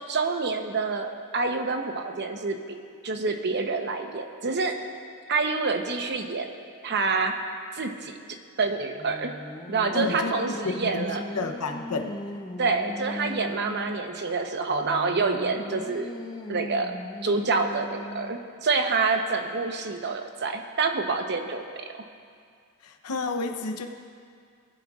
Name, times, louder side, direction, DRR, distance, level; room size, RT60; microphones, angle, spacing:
voice 1, 0.1-2.8 3.0-4.7 5.3-6.5 6.8-7.3 7.7-8.2 8.6-9.3 9.7-11.2 12.6-16.1 16.5-16.9 17.2-21.9, right 4 dB, 50° right, 5 dB, 0.9 m, -27 dB
Singing, 8.7-14.1 14.7-18.6, left 1 dB, 20° left, 0.6 m, -39 dB
voice 2, 9.9-12.1 15.5-15.6 22.8-23.9, left 3 dB, 85° left, 5 dB, 0.8 m, -31 dB
20.0 x 11.0 x 2.4 m, 2.2 s
head